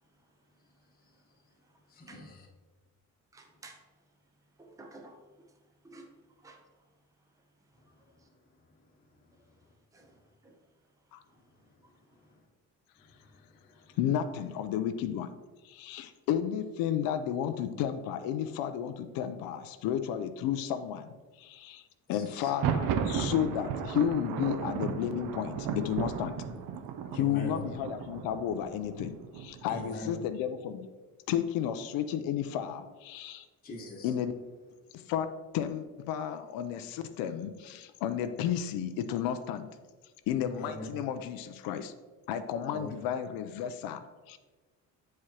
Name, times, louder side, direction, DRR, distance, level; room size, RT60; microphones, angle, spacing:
voice 1, 1.9-2.5 12.1-12.2 13.0-14.0 22.1-22.5 27.1-27.6 29.7-30.1 33.6-34.1 40.6-40.9 42.7-42.9, left 2 dB, 25° left, -2 dB, 1.1 m, -43 dB
voice 2, 3.3-3.8 4.6-5.2 5.8-6.1 6.4-6.6 9.9-10.2 10.4-10.5 25.7-25.8, right 1 dB, 10° right, 3 dB, 0.7 m, -48 dB
voice 3, 14.0-15.3 15.6-21.8 22.1-26.4 27.1-30.9 31.3-33.5 34.0-34.3 34.9-35.3 35.5-39.7 40.3-41.9 42.3-44.4, left 9 dB, 85° left, 9 dB, 0.5 m, -32 dB
Thunder, 22.4-30.1, right 7 dB, 75° right, 0.6 m, -35 dB
8.2 x 4.8 x 2.9 m, 1.3 s
cardioid pair, 130°, 34 cm